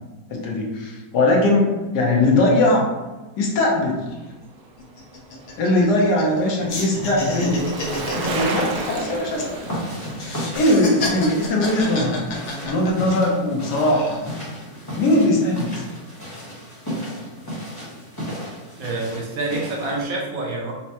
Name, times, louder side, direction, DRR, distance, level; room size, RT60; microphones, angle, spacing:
voice 1, 0.3-2.8 3.4-4.1 5.6-7.7 8.1-9.5 10.5-12.2 12.6-14.2 15.0-15.8, left 1 dB, 80° left, -2 dB, 1.4 m, -20 dB
sound 1, 3.9-4.0 4.3-4.5 4.8-6.4 6.7-9.8 10.1-13.3 13.7-14.3, left 3 dB, 60° left, 0.8 m, -30 dB
Bicycle, 4.5-12.9 13.2-13.3, right 3 dB, 85° right, 1.2 m, -34 dB
sound 2, 9.3-20.0, equal, 15° left, 0.9 m, -34 dB
voice 2, 18.8-20.7, right 2 dB, 60° right, -2 dB, 1.2 m, -27 dB
4.5 x 2.1 x 2.8 m, 1.1 s
omnidirectional pair, 1.8 m